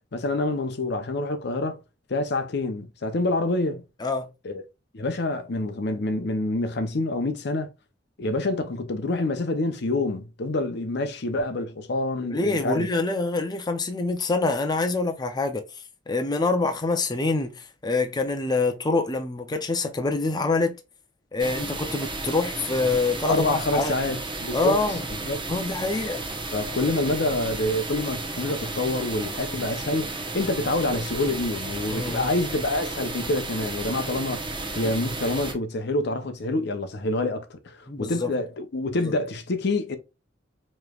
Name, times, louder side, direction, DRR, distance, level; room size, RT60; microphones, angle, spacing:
voice 1, 0.1-1.8 2.1-3.8 4.4-4.6 4.9-7.7 8.2-12.9 23.2-24.8 25.2-25.4 26.5-40.0, left 2 dB, 65° left, 0.7 m, -27 dB
voice 2, 12.3-20.8 21.3-24.0 24.5-25.0 25.5-26.3 31.9-32.3 37.9-38.3 39.0-39.1, left 3 dB, 25° left, 0.5 m, -26 dB
sound 1, 21.4-35.5, right 2 dB, 25° right, 1.0 m, -33 dB
5.0 x 3.1 x 2.3 m
head